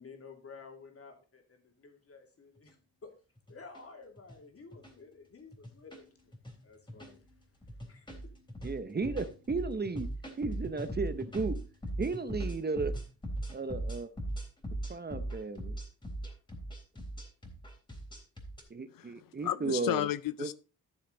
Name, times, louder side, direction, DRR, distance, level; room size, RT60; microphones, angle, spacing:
voice 1, 0.0-2.8 3.0-3.1 3.5-6.3 6.6-7.2 7.8-8.3, left 4 dB, 45° left, 2.8 m, -52 dB
sound 1, 2.6-2.7 3.4-3.8 4.2-4.3 4.7-4.9 5.5-6.0 6.3-6.6 6.9-7.2 7.6-18.6, right 1 dB, 15° left, 3.5 m, -39 dB
voice 2, 8.6-10.1 10.4-11.6 12.0-12.9 13.5-14.1 14.9-15.8 18.7-20.1 20.4-20.5, right 4 dB, 30° right, 0.9 m, -34 dB
voice 3, 18.9-20.5, left 13 dB, 85° left, 0.5 m, -33 dB
13.0 x 7.0 x 3.9 m
wide cardioid pair, 120°, 32 cm